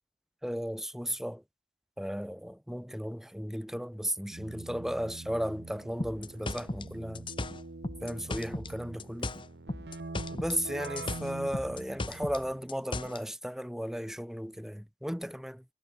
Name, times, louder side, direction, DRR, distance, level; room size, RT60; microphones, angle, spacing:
voice 1, 0.4-1.4 2.0-7.3 8.0-9.4 10.3-15.7, equal, ahead, 1.9 m, -35 dB
Keyboard (musical), 4.3-12.7, right 2 dB, 70° right, 0.9 m, -45 dB
sound 1, 6.0-8.7 9.0-10.6 10.8-13.2, left 2 dB, 30° left, 1.2 m, -36 dB
head